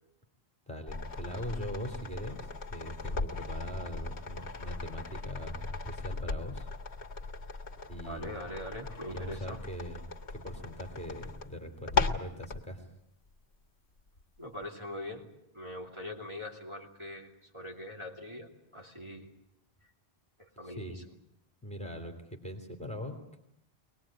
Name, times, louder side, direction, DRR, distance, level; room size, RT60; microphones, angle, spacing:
voice 1, 0.7-6.7 7.9-8.4 9.1-10.0 10.3-12.9 20.6-21.0 21.6-23.4, equal, 5° left, 4 dB, 3.1 m, -41 dB
sound 1, 0.9-12.6 14.2-14.3, left 4 dB, 80° left, 1.8 m, -37 dB
sound 2, 4.3-5.8 8.9-10.4, left 1 dB, 20° left, 2.4 m, -58 dB
voice 2, 8.0-9.6 14.4-15.3 15.5-19.3 19.8-19.9 20.4-21.0, left 1 dB, 25° right, -2 dB, 2.9 m, -42 dB
24.0 x 20.0 x 8.9 m, 0.79 s
omnidirectional pair, 1.1 m